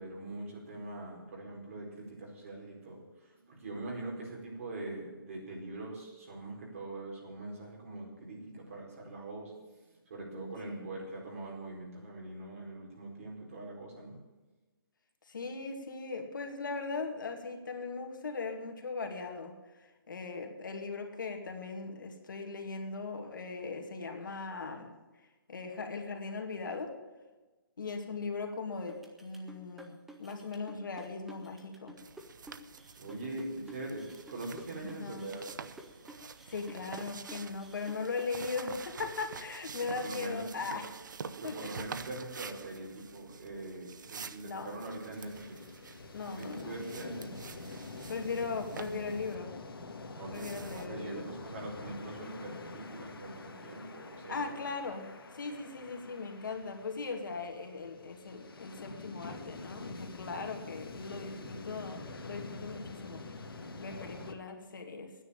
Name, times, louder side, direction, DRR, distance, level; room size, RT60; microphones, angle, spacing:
voice 1, 0.0-9.6 9.8-14.2 33.0-35.5 39.8-40.8 41.4-45.6 46.2-47.5 50.1-54.5, right 2 dB, 40° right, -2 dB, 4.6 m, -43 dB
voice 2, 10.3-11.0 15.3-24.9 25.5-27.0 27.8-29.9 30.2-32.0 34.8-35.4 36.5-40.9 41.4-41.7 44.4-44.8 46.1-46.8 48.1-49.5 50.3-51.3 54.3-63.2 63.8-65.1, left 4 dB, 60° left, 4 dB, 2.2 m, -39 dB
sound 1, 28.9-38.4, right 1 dB, ahead, 0.3 m, -52 dB
sound 2, 32.0-49.4 50.3-50.9, right 5 dB, 55° right, 0.8 m, -47 dB
sound 3, 44.4-64.3, left 3 dB, 90° left, 1.7 m, -46 dB
10.5 x 9.8 x 8.8 m, 1.2 s
hypercardioid pair, 170°, 12 cm